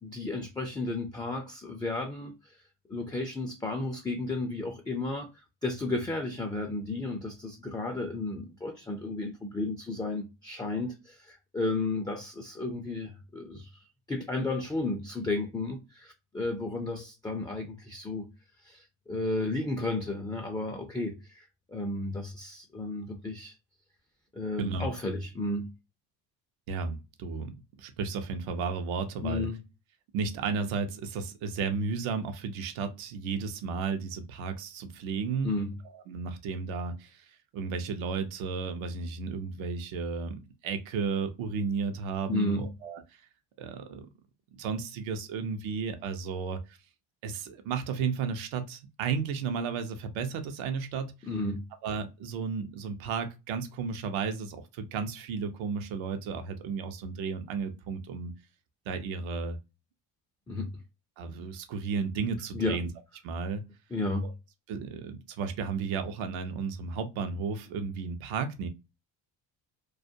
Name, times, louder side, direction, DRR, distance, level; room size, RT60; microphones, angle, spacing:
voice 1, 0.0-2.3 2.9-5.3 5.6-13.8 14.1-18.3 18.6-23.5 24.3-25.7 29.2-29.6 35.4-35.7 42.3-42.7 51.2-51.7 60.5-60.7 62.5-62.8 63.9-64.3, left 2 dB, 10° left, 0.3 m, -33 dB
voice 2, 26.7-29.5 30.1-35.5 35.9-37.3 37.5-43.0 43.6-44.1 44.5-46.8 47.2-51.1 51.8-58.3 58.9-59.6 61.2-62.9 63.2-63.7 64.2-64.3 64.7-68.7, right 5 dB, 75° right, 0.7 m, -33 dB
2.4 x 2.1 x 2.5 m
supercardioid pair, 75°, 47 cm